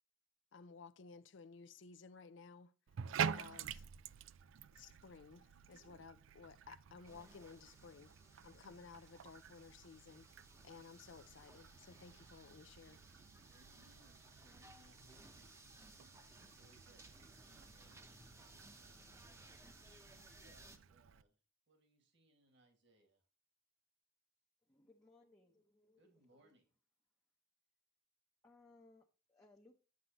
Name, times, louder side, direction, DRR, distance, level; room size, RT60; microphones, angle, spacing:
voice 1, 0.5-2.7 3.3-3.8 4.8-8.1 8.4-10.3 10.6-13.0, left 5 dB, 65° left, 0.5 m, -56 dB
Bathtub (filling or washing), 2.9-21.2, right 7 dB, 80° right, 0.4 m, -49 dB
sound 1, 7.0-20.8, right 2 dB, 15° right, 0.9 m, -61 dB
voice 2, 13.5-15.6 16.3-18.4 18.8-19.9 20.3-21.4 21.7-23.2 26.0-26.6, right 1 dB, 65° right, 2.0 m, -71 dB
voice 3, 24.6-26.5 28.4-29.8, left 2 dB, 15° left, 0.8 m, -67 dB
9.6 x 7.5 x 3.0 m
head